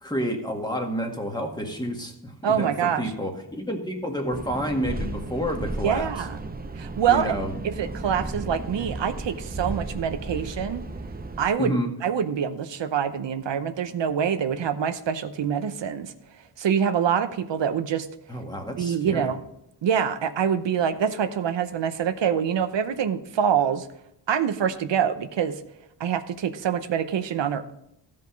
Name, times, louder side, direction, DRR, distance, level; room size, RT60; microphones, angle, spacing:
voice 1, 0.0-6.1 7.1-7.6 11.6-11.9 18.3-19.3, equal, 10° left, 2 dB, 1.8 m, -29 dB
voice 2, 2.4-3.0 5.8-6.4 6.8-7.3 7.6-10.9 11.4-16.1 16.6-18.1 18.8-19.4 19.8-23.9 24.3-25.6 26.0-27.7, right 8 dB, 80° right, 10 dB, 0.9 m, -25 dB
sound 1, 4.3-11.5, right 2 dB, 20° right, 0.6 m, -34 dB
15.0 x 5.4 x 3.9 m, 0.81 s
wide cardioid pair, 105°, 44 cm